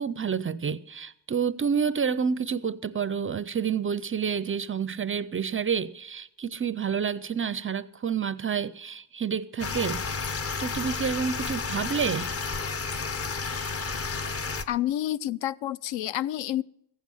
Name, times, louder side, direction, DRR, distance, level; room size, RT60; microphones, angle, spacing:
voice 1, 0.0-12.3, right 7 dB, 30° right, 0.4 m, -29 dB
sound 1, 9.6-14.6, left 4 dB, 30° left, 0.8 m, -31 dB
voice 2, 14.7-16.6, left 12 dB, 70° left, 0.6 m, -29 dB
15.0 x 8.3 x 7.1 m
cardioid pair, 115°, 47 cm